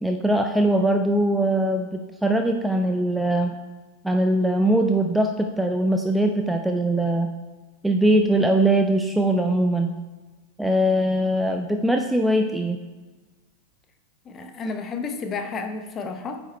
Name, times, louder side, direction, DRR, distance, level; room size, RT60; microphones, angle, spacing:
voice 1, 0.0-3.5 4.0-7.3 7.8-9.9 10.6-12.8, right 1 dB, 5° right, 4 dB, 0.4 m, -21 dB
voice 2, 14.3-16.4, left 4 dB, 25° left, 6 dB, 0.8 m, -31 dB
8.8 x 5.3 x 4.1 m, 1.3 s
figure-of-eight pair, 90°, 0 cm